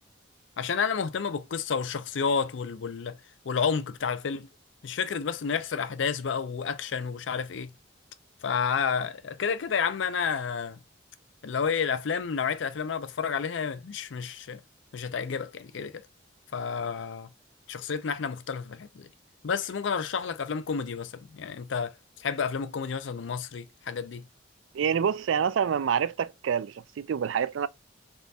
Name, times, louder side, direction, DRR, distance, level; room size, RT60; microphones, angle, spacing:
voice 1, 0.6-3.2 3.5-4.5 4.8-7.7 8.4-10.8 11.4-14.6 14.9-16.0 16.5-17.3 17.7-19.1 19.4-21.9 22.2-24.2, left 6 dB, 75° left, 0.5 m, -30 dB
voice 2, 24.7-27.7, right 7 dB, 80° right, 0.3 m, -27 dB
3.6 x 2.4 x 4.0 m
head